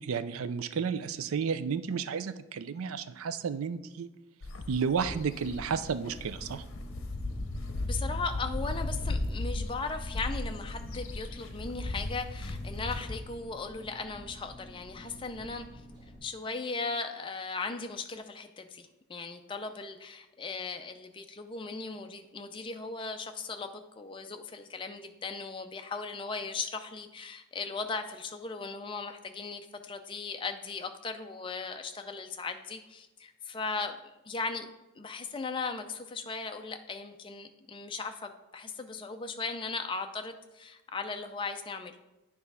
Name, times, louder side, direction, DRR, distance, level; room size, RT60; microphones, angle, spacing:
voice 1, 0.0-4.1 4.7-6.6, right 6 dB, 85° right, 13 dB, 0.4 m, -32 dB
sound 1, 4.4-13.2, left 2 dB, 70° left, 0.8 m, -36 dB
Engine, 5.5-16.2, equal, 20° right, 2.2 m, -50 dB
voice 2, 7.8-15.7 16.2-34.0 34.3-34.7 35.0-41.9, left 4 dB, 25° left, 6 dB, 0.4 m, -37 dB
9.4 x 3.4 x 5.5 m, 1.0 s
head